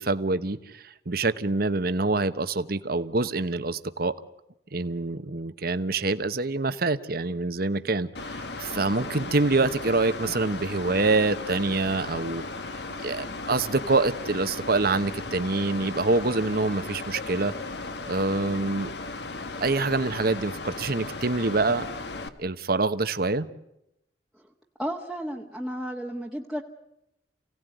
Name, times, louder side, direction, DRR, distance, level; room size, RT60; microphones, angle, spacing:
voice 1, 0.0-4.1 4.7-12.4 13.0-17.5 18.1-18.9 19.6-21.9 22.4-23.5, right 3 dB, 60° right, 12 dB, 1.1 m, -26 dB
Mechanical fan, 8.1-22.3, left 3 dB, 70° left, 1.6 m, -36 dB
voice 2, 24.8-26.6, equal, ahead, -3 dB, 1.4 m, -33 dB
29.0 x 17.5 x 9.3 m, 0.85 s
head